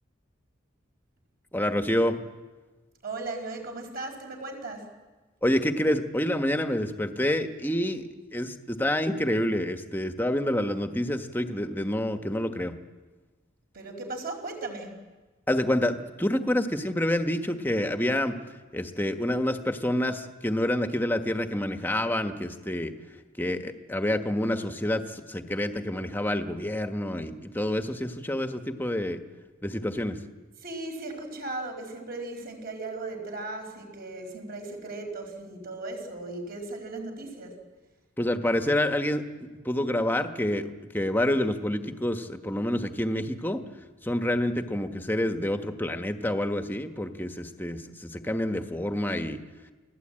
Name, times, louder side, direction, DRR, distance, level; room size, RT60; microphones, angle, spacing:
voice 1, 1.5-2.2 5.4-12.8 15.5-18.4 18.7-22.9 23.4-29.2 29.6-30.2 38.2-40.7 40.9-43.6 44.0-49.4, left 1 dB, 10° left, 7 dB, 1.4 m, -28 dB
voice 2, 3.0-4.9 13.7-14.9 30.6-37.6, right 2 dB, 50° right, 3 dB, 5.1 m, -37 dB
29.5 x 19.0 x 8.9 m, 1.3 s
head